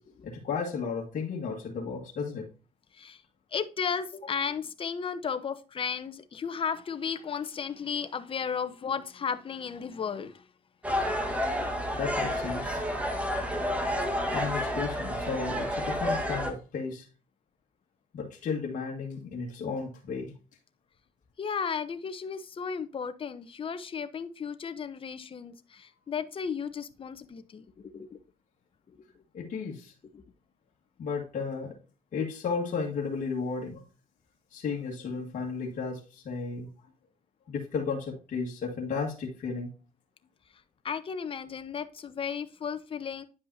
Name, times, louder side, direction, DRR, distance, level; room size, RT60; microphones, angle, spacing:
voice 1, 0.2-2.5 11.9-12.9 14.3-17.1 18.1-20.3 29.3-29.9 31.0-31.8 32.1-33.8 34.5-36.7 37.5-39.7, left 5 dB, 50° left, -2 dB, 1.7 m, -34 dB
voice 2, 3.5-10.5 11.6-11.7 21.4-28.2 28.9-29.0 30.1-30.2 40.8-43.2, left 6 dB, 30° left, 10 dB, 0.8 m, -34 dB
sound 1, 10.8-16.5, equal, 10° right, 1.4 m, -30 dB
9.8 x 5.3 x 2.7 m, 0.34 s
cardioid pair, 110°, 17 cm